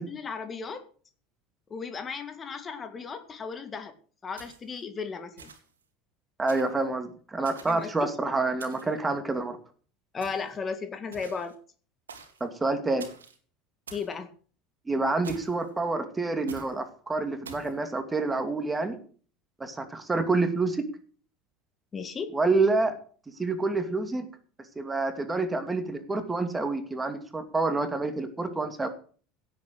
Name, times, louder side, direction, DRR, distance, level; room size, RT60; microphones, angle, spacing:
voice 1, 0.1-0.8 1.7-3.9 4.2-5.5 7.7-8.1 10.1-11.6 13.9-14.3 21.9-22.4, left 5 dB, 30° left, 9 dB, 1.9 m, -35 dB
sound 1, 4.4-4.8 5.4-5.8 6.5-6.8 7.4-8.0 8.6-9.0 10.2-10.6 11.1-11.5 12.1-12.4 13.0-13.4 13.9-14.1 15.2-15.7 16.5-16.7 17.4-17.7, right 5 dB, 85° right, 2.3 m, -46 dB
voice 2, 6.4-9.6 12.4-13.1 14.9-19.0 19.6-20.9 22.3-22.9 23.4-24.3 24.8-28.9, right 3 dB, 15° right, 7 dB, 2.6 m, -28 dB
16.5 x 7.9 x 6.4 m, 0.43 s
hypercardioid pair, 75°, 0 cm